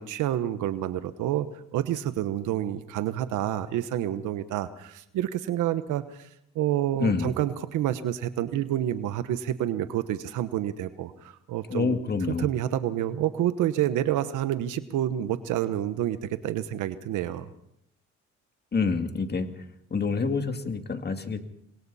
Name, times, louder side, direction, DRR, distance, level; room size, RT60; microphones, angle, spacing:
voice 1, 0.0-1.5 1.7-6.3 6.5-12.0 12.4-17.5, right 12 dB, 90° right, 11 dB, 1.1 m, -28 dB
voice 2, 7.0-7.3 11.7-12.5 18.7-19.5 19.9-21.4, left 4 dB, 35° left, 6 dB, 2.4 m, -27 dB
27.5 x 22.5 x 4.2 m, 0.74 s
cardioid pair, 90°, 30 cm